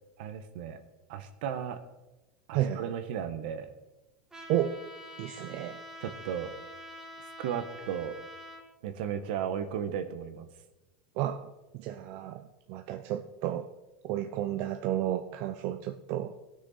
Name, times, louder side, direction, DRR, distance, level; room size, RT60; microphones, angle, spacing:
voice 1, 0.2-0.8 1.1-1.8 2.5-3.8 6.0-6.5 7.4-8.2 8.8-10.5, right 8 dB, 75° right, 9 dB, 1.2 m, -35 dB
voice 2, 2.5-2.9 4.5-4.8 5.2-5.8 11.2-12.4 12.7-13.7 14.0-16.3, right 12 dB, 55° right, 7 dB, 0.6 m, -32 dB
Trumpet, 4.3-8.6, equal, 10° right, 2.4 m, -46 dB
17.5 x 6.4 x 4.1 m, 1.1 s
supercardioid pair, 125°, 5 cm